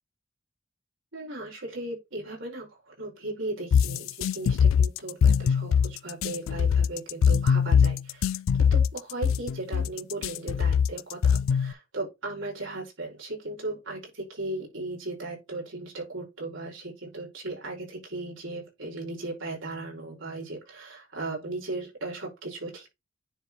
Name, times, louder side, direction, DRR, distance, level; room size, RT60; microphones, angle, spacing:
voice 1, 1.1-22.9, right 2 dB, 80° right, 5.1 m, -37 dB
sound 1, 3.7-11.7, left 7 dB, 85° left, 0.3 m, -22 dB
10.0 x 4.3 x 3.1 m
head